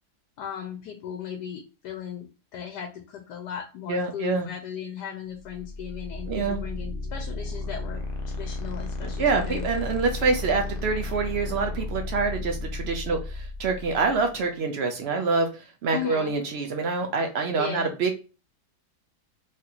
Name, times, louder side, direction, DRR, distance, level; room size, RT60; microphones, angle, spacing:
voice 1, 0.4-9.7 15.9-16.4 17.6-17.9, left 8 dB, 85° left, 4 dB, 1.2 m, -37 dB
voice 2, 3.9-4.5 6.3-6.6 9.2-18.2, right 4 dB, 70° right, 4 dB, 0.6 m, -26 dB
sound 1, 5.4-14.3, left 2 dB, 60° left, 0.9 m, -34 dB
3.3 x 2.8 x 2.3 m, 0.33 s
omnidirectional pair, 1.7 m